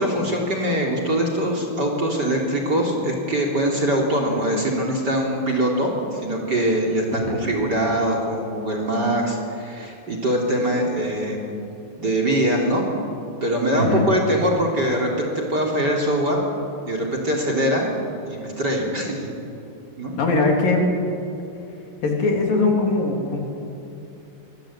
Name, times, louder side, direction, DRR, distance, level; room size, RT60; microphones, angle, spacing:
voice 1, 0.0-11.4 12.0-12.8 13.4-16.4 16.9-17.9 18.3-19.3 20.0-20.1, right 1 dB, 30° right, 1 dB, 3.7 m, -23 dB
voice 2, 13.7-14.1 20.2-20.9 22.0-23.4, left 3 dB, 70° left, 1 dB, 5.0 m, -20 dB
24.5 x 21.5 x 8.8 m, 2.6 s
omnidirectional pair, 4.2 m